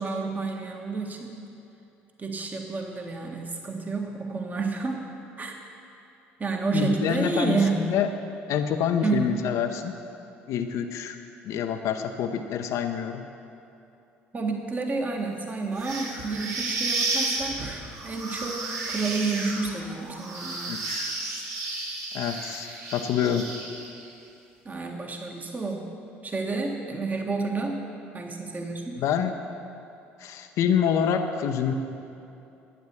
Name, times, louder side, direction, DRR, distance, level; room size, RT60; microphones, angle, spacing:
voice 1, 0.0-1.3 2.2-5.0 5.4-5.6 6.4-7.8 9.0-9.3 14.3-20.8 24.6-25.9 26.2-27.8 28.1-29.0, right 4 dB, 25° right, 2 dB, 1.6 m, -30 dB
voice 2, 6.7-8.1 8.5-9.9 10.5-11.2 11.4-13.2 20.7-21.2 22.1-23.5 29.0-29.4 30.2-31.7, left 8 dB, 60° left, 5 dB, 0.8 m, -27 dB
sound 1, 15.8-24.1, right 3 dB, 50° right, 2.4 m, -32 dB
12.5 x 9.3 x 7.2 m, 2.8 s
figure-of-eight pair, 55°, 6 cm